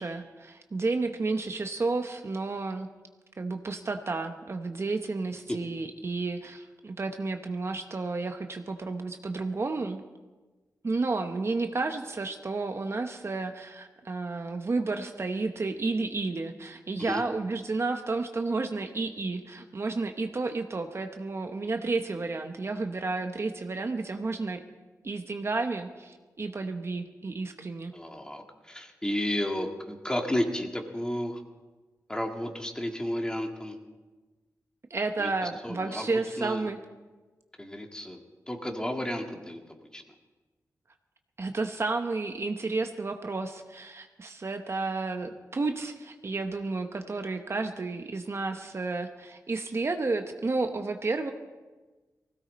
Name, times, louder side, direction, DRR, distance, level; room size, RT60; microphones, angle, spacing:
voice 1, 0.0-2.9 3.4-10.0 10.8-24.6 25.0-27.9 34.9-36.8 41.4-51.3, right 3 dB, 45° right, 6 dB, 1.0 m, -31 dB
voice 2, 27.9-31.4 32.1-33.8 35.2-36.7 37.6-40.1, left 1 dB, 10° left, 3 dB, 1.9 m, -33 dB
20.0 x 16.5 x 4.3 m, 1.3 s
wide cardioid pair, 90°, 6 cm